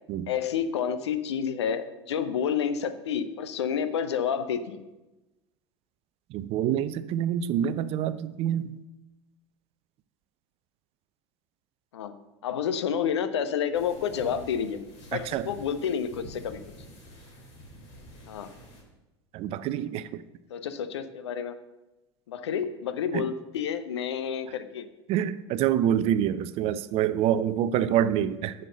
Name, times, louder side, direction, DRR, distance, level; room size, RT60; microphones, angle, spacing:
voice 1, 0.3-4.9 11.9-12.1 12.4-14.8 15.1-16.6 18.3-18.5 20.5-21.5 22.3-24.9, left 7 dB, 65° left, 0.8 m, -29 dB
voice 2, 6.3-8.7 15.1-15.5 19.3-20.2 23.1-23.2 25.1-28.5, right 10 dB, 40° right, 0.5 m, -26 dB
sound 1, 13.7-18.8, equal, 45° left, 3.6 m, -48 dB
9.9 x 6.6 x 6.5 m
figure-of-eight pair, 75°, 15 cm